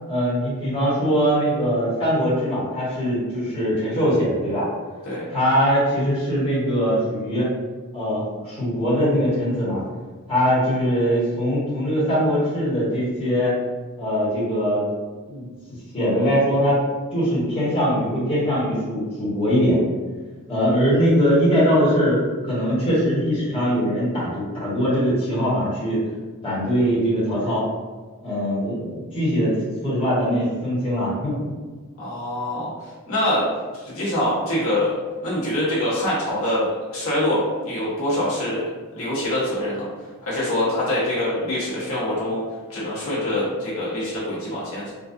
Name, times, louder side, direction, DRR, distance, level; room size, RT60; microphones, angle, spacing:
voice 1, 0.1-4.7 5.3-7.5 7.9-9.8 10.3-13.5 14.0-14.8 15.3-15.5 15.9-16.8 17.1-19.8 20.5-26.0 26.4-27.7 28.2-31.5, equal, 25° left, -10 dB, 1.2 m, -21 dB
voice 2, 32.0-32.7 33.1-33.4 33.8-34.9 35.2-38.6 38.9-39.8 40.2-42.4 42.7-44.9, left 1 dB, 70° left, -8 dB, 1.2 m, -24 dB
3.8 x 2.4 x 2.6 m, 1.4 s
head